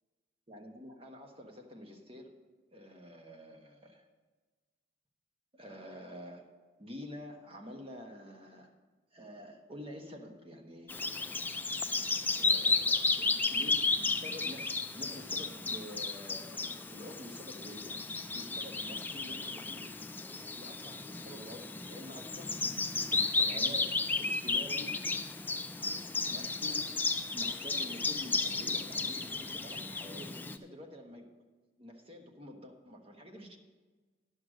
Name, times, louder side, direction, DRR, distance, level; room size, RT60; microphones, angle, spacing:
voice 1, 0.5-2.4 2.7-4.0 5.5-6.5 6.8-8.7 9.1-11.5 12.4-13.8 14.1-19.8 20.4-22.8 23.1-25.1 26.3-27.0 27.3-31.3 31.8-33.6, equal, 30° right, 3 dB, 1.2 m, -48 dB
Bird vocalization bird call bird song, 10.9-30.6, left 3 dB, 10° left, 0.4 m, -33 dB
10.5 x 6.5 x 6.2 m, 1.3 s
head